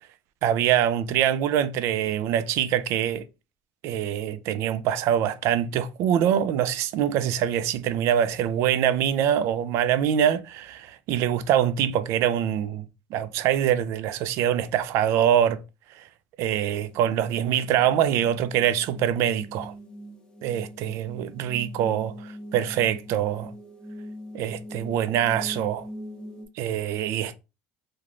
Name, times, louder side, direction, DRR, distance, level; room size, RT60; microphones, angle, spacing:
voice 1, 0.4-3.2 3.8-12.9 13.1-15.6 16.0-16.1 16.4-19.7 20.4-23.5 24.3-25.9 26.6-27.3, right 10 dB, 65° right, 0.3 m, -24 dB
sound 1, 16.6-26.5, equal, 15° left, 0.7 m, -42 dB
2.9 x 2.1 x 2.5 m
supercardioid pair, 105°, 5 cm